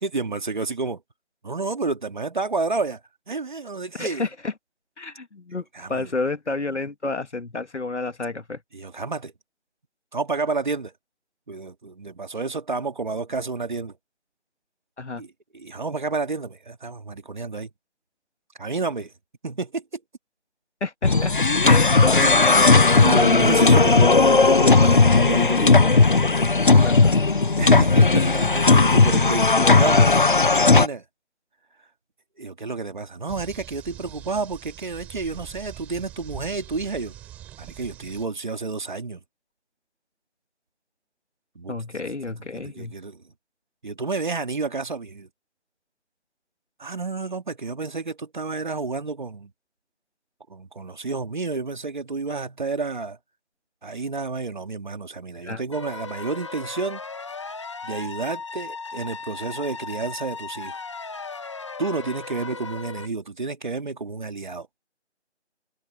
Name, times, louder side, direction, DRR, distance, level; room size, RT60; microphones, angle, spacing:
voice 1, 0.0-1.0 1.4-3.0 3.3-4.3 5.7-6.1 8.7-9.3 10.1-10.9 11.5-13.9 15.2-15.3 15.5-17.7 18.6-19.1 19.4-20.0 21.2-21.3 22.2-22.6 23.0-25.8 27.6-30.1 30.3-31.0 32.4-37.1 37.6-39.2 41.6-41.7 42.5-43.2 43.8-45.3 46.8-49.5 50.5-53.2 53.8-57.0 57.8-60.8 61.8-64.7, right 4 dB, 40° right, 2.3 m, -30 dB
voice 2, 4.0-4.5 5.0-8.6 15.0-15.2 20.8-21.3 21.6-22.7 26.8-27.2 29.6-30.1 41.7-42.9 55.4-55.6, left 3 dB, 75° left, 2.5 m, -30 dB
sound 1, 21.0-30.9, left 3 dB, 45° left, 0.5 m, -16 dB
sound 2, 33.3-38.3, right 12 dB, 5° right, 3.1 m, -43 dB
sound 3, 55.7-63.1, left 4 dB, 25° left, 1.6 m, -36 dB
figure-of-eight pair, 170°, 35 cm